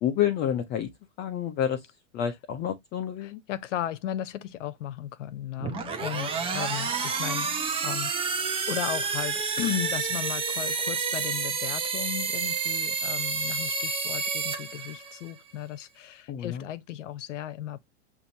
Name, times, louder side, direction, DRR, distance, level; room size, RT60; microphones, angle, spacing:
voice 1, 0.0-0.9 1.2-1.8 2.1-3.4 16.3-16.6, left 10 dB, 25° left, 0.5 m, -28 dB
voice 2, 3.2-17.8, left 11 dB, 75° left, 0.8 m, -35 dB
sound 1, 5.6-15.3, right 5 dB, 15° right, 0.7 m, -29 dB
6.8 x 2.6 x 2.6 m
hypercardioid pair, 125°, 37 cm